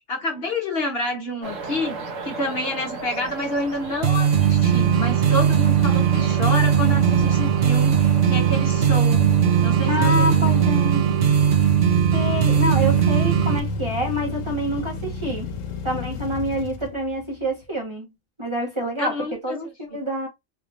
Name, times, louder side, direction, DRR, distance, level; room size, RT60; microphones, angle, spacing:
voice 1, 0.0-2.0 2.2-9.2 9.6-10.2 19.0-19.6, left 1 dB, 55° left, 1.1 m, -28 dB
sound 1, 1.4-11.2, right 4 dB, 80° right, 1.3 m, -37 dB
sound 2, 3.3-17.6, left 3 dB, 90° left, 1.1 m, -34 dB
sound 3, 4.0-13.6, right 9 dB, 55° right, 0.9 m, -19 dB
voice 2, 9.9-11.1 12.1-15.5 15.8-18.1 18.4-20.3, left 1 dB, 25° right, 1.2 m, -27 dB
3.4 x 3.0 x 2.4 m
omnidirectional pair, 1.3 m